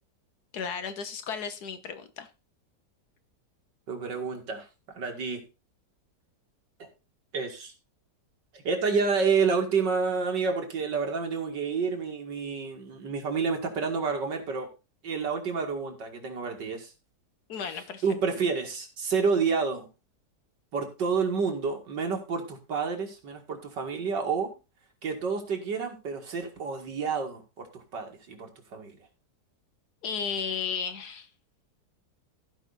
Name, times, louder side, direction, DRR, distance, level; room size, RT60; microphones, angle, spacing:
voice 1, 0.5-2.3 17.5-18.0 30.0-31.3, left 6 dB, 65° left, 10 dB, 1.6 m, -34 dB
voice 2, 3.9-4.7 4.9-5.4 6.8-6.9 7.3-7.7 8.5-14.7 15.0-16.9 18.0-19.9 20.7-24.5 25.0-28.9, right 5 dB, 90° right, 3 dB, 2.7 m, -29 dB
15.0 x 5.3 x 4.1 m, 0.29 s
omnidirectional pair, 1.8 m